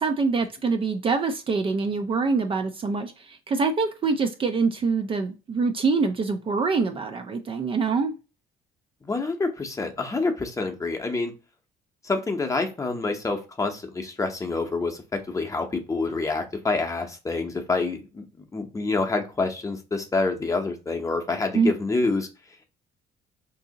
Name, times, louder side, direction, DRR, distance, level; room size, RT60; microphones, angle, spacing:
voice 1, 0.0-8.1 21.5-21.7, right 4 dB, 30° right, 6 dB, 0.4 m, -25 dB
voice 2, 9.0-11.3 12.0-18.2 18.5-22.3, left 3 dB, 20° left, 4 dB, 0.7 m, -27 dB
2.7 x 2.7 x 3.8 m, 0.30 s
cardioid pair, 110°, 17 cm